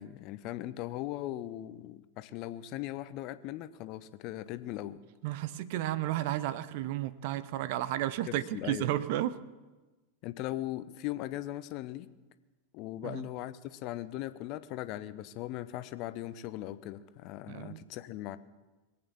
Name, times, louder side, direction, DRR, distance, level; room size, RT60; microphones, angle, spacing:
voice 1, 0.0-5.0 8.3-8.9 10.2-12.1 12.7-18.4, left 14 dB, 40° left, 14 dB, 0.7 m, -39 dB
voice 2, 5.2-9.4 13.0-13.3 17.5-17.9, right 13 dB, 50° right, 16 dB, 0.7 m, -33 dB
21.5 x 8.7 x 7.2 m, 1.2 s
figure-of-eight pair, 90°, 0 cm